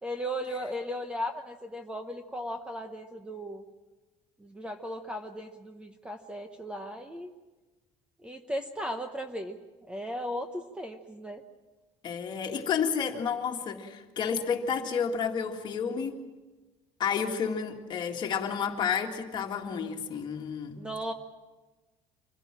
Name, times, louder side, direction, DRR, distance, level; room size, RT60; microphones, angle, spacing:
voice 1, 0.0-3.6 4.4-7.3 8.2-9.6 9.8-11.4 20.8-21.1, equal, 10° right, 7 dB, 0.9 m, -36 dB
voice 2, 12.0-16.2 17.0-20.8, left 7 dB, 40° left, 3 dB, 2.0 m, -31 dB
25.5 x 16.0 x 7.4 m, 1.2 s
cardioid pair, 150°, 12 cm